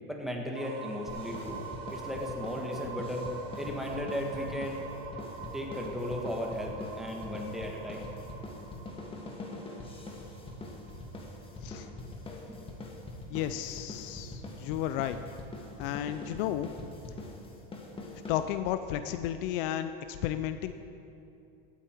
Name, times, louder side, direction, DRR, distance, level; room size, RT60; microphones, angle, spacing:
voice 1, 0.1-1.6 1.9-3.3 3.6-4.8 5.5-8.1 12.5-12.6, left 1 dB, ahead, 0 dB, 1.6 m, -36 dB
sound 1, 0.5-12.3, right 4 dB, 60° right, 2.3 m, -45 dB
sound 2, 1.1-18.8, left 2 dB, 20° left, 1.5 m, -43 dB
voice 2, 13.3-15.2 15.8-16.7 18.1-20.7, left 11 dB, 65° left, 10 dB, 0.6 m, -33 dB
17.0 x 8.6 x 4.6 m, 2.7 s
supercardioid pair, 135°, 30 cm